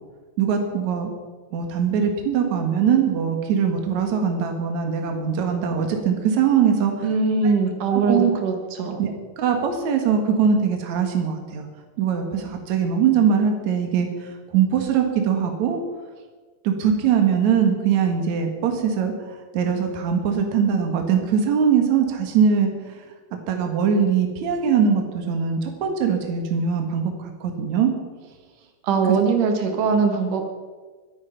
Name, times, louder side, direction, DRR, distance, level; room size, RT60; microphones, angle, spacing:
voice 1, 0.4-1.1 1.5-7.1 7.4-7.5 7.9-8.3 9.0-9.1 9.4-11.7 12.0-15.8 16.6-19.1 19.5-22.9 23.5-27.9, right 7 dB, 70° right, 4 dB, 2.9 m, -21 dB
voice 2, 7.0-9.0 28.8-30.4, right 4 dB, 85° right, 4 dB, 3.3 m, -21 dB
22.5 x 9.3 x 5.8 m, 1.4 s
omnidirectional pair, 3.5 m